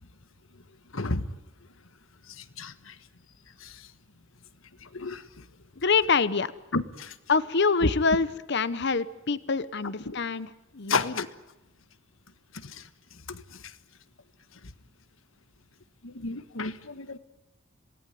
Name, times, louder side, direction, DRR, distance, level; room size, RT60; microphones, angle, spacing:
voice 1, 0.9-1.3 2.4-2.9 3.6-3.7 4.9-5.2 6.7-7.1 7.8-7.9 10.1-10.2 10.9-11.3 12.6-12.8 13.3-13.4 16.0-17.2, left 3 dB, 90° left, 12 dB, 1.5 m, -31 dB
voice 2, 5.8-6.5 7.3-11.3, left 4 dB, 60° left, 15 dB, 1.0 m, -26 dB
27.0 x 18.5 x 9.2 m, 1.0 s
head